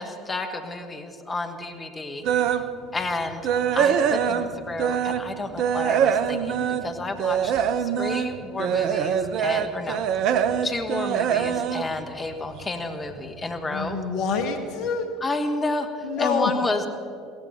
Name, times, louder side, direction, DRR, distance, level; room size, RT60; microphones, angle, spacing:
voice 1, 0.0-2.2 2.9-7.5 7.8-10.0 10.6-14.0 15.2-16.9, left 2 dB, 25° left, 6 dB, 1.4 m, -31 dB
sound 1, 2.2-2.7 3.1-5.3 5.6-12.8 13.2-13.4 13.9-14.0 14.4-14.5, right 8 dB, 55° right, 0.7 m, -24 dB
voice 2, 13.7-15.1 16.0-16.5, left 5 dB, 55° left, 7 dB, 1.4 m, -26 dB
16.5 x 14.0 x 5.8 m, 2.3 s
figure-of-eight pair, 65°, 0 cm